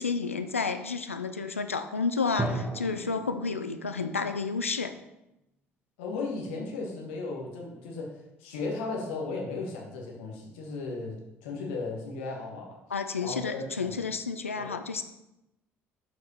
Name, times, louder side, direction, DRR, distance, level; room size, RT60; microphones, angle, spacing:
voice 1, 0.0-4.9 12.9-15.0, left 4 dB, 90° left, 9 dB, 0.4 m, -31 dB
Drum, 2.4-4.3, right 2 dB, 15° right, 1.2 m, -35 dB
voice 2, 6.0-12.8 13.2-13.9 14.6-14.8, left 3 dB, 70° left, -1 dB, 1.5 m, -36 dB
7.2 x 4.8 x 4.2 m, 0.91 s
figure-of-eight pair, 55°, 7 cm